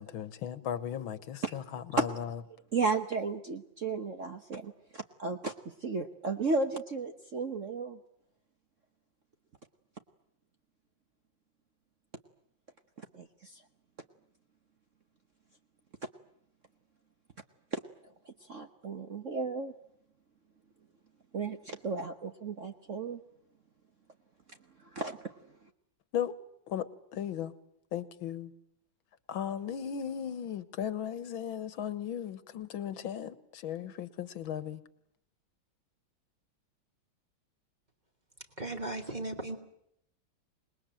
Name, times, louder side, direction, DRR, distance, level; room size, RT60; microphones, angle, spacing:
voice 1, 0.0-2.4 26.1-26.3 26.7-27.5 27.9-28.5 29.3-34.8, left 9 dB, 80° left, 15 dB, 2.0 m, -36 dB
voice 2, 2.7-8.0 13.1-13.6 17.7-17.8 18.2-19.7 21.3-23.2 24.8-25.2, right 4 dB, 45° right, 7 dB, 1.3 m, -34 dB
voice 3, 38.6-39.6, right 2 dB, 20° right, 5 dB, 3.2 m, -36 dB
26.5 x 20.5 x 9.0 m, 0.74 s
omnidirectional pair, 2.2 m